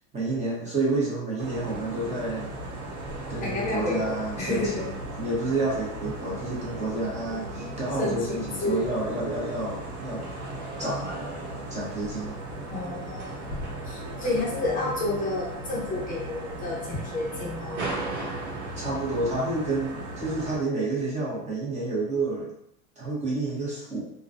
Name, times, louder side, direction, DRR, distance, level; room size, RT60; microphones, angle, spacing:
voice 1, 0.1-2.6 3.3-10.2 10.8-11.2 11.7-12.4 18.8-22.5 23.0-24.1, right 2 dB, 15° right, -6 dB, 0.8 m, -29 dB
sound 1, 1.4-20.6, right 2 dB, 85° right, 1.0 m, -36 dB
voice 2, 3.4-4.8 8.0-8.9 12.7-13.4 13.9-17.9, left 2 dB, 20° left, -4 dB, 0.7 m, -30 dB
2.2 x 2.2 x 2.5 m, 0.78 s
supercardioid pair, 135°, 44 cm